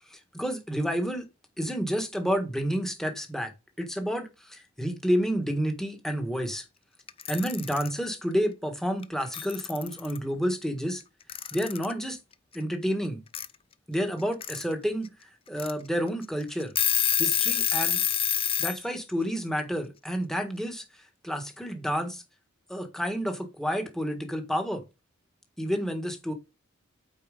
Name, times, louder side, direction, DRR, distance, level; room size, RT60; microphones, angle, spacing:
voice 1, 0.1-1.3 1.6-3.5 3.8-6.6 7.3-11.0 11.5-12.2 12.5-13.2 13.9-15.1 15.5-16.7 17.2-18.0 18.6-22.2 22.7-24.8 25.6-26.3, equal, ahead, 1.5 m, -30 dB
Alarm / Clock, 7.1-7.9 9.0-9.1 9.3-10.2 11.3-11.9 13.3-13.5 14.2-14.6 15.1-15.2 15.6-15.7 16.2-16.3 16.6-18.8, left 10 dB, 25° left, 0.5 m, -27 dB
8.6 x 4.8 x 5.1 m
head